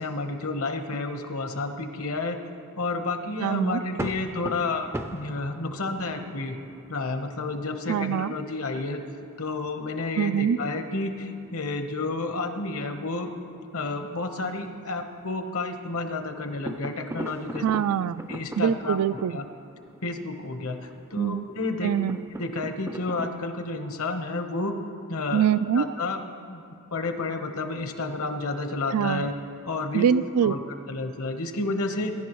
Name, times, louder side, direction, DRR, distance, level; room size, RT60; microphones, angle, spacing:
voice 1, 0.0-2.4 2.8-6.5 6.9-9.0 9.4-13.3 13.7-17.6 18.3-19.0 19.3-19.4 20.0-21.9 22.4-24.8 25.1-25.5 25.7-26.2 26.5-26.6 26.9-29.3 29.7-30.1 30.4-32.1, left 3 dB, 65° left, 6 dB, 1.1 m, -30 dB
voice 2, 3.4-3.8 7.9-8.3 10.2-10.6 17.6-18.3 18.6-19.4 21.2-21.5 21.8-22.2 25.3-25.9 28.9-29.3 29.9-30.5, right 8 dB, 85° right, 16 dB, 0.3 m, -24 dB
sound 1, 3.7-13.0 13.2-13.3 13.7-13.8 14.6-15.6 15.9-23.3, right 1 dB, 10° right, 0.4 m, -41 dB
22.5 x 11.0 x 3.1 m, 2.6 s
head